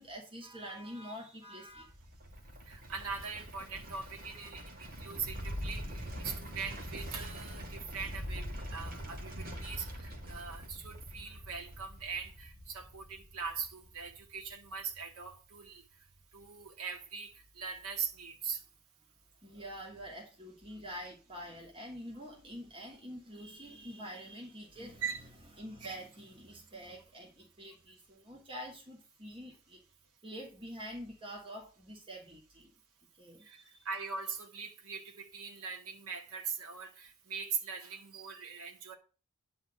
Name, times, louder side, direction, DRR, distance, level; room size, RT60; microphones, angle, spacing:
voice 1, 0.0-1.9 3.9-4.0 4.3-4.5 9.5-9.8 19.4-25.3 25.6-29.8 30.2-32.7 33.2-33.9, equal, 25° right, 3.0 m, -46 dB
sound 1, 1.7-14.9 15.2-15.3, equal, 40° right, 2.2 m, -44 dB
voice 2, 2.7-4.6 5.0-15.8 16.3-18.6 25.0-25.2 33.4-33.6 33.9-38.9, right 6 dB, 70° right, 1.9 m, -41 dB
11.0 x 4.2 x 7.9 m
head